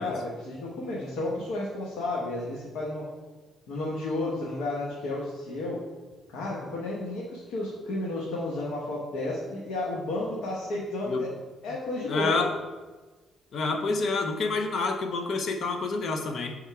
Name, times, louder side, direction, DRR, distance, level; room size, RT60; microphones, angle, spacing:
voice 1, 0.0-3.1 3.7-5.8 6.3-11.3 11.6-12.4, left 2 dB, 90° left, -4 dB, 1.1 m, -32 dB
voice 2, 12.1-12.5 13.5-16.6, left 3 dB, 60° left, 5 dB, 0.7 m, -28 dB
6.7 x 3.6 x 4.7 m, 1.3 s
cardioid pair, 90°, 0 cm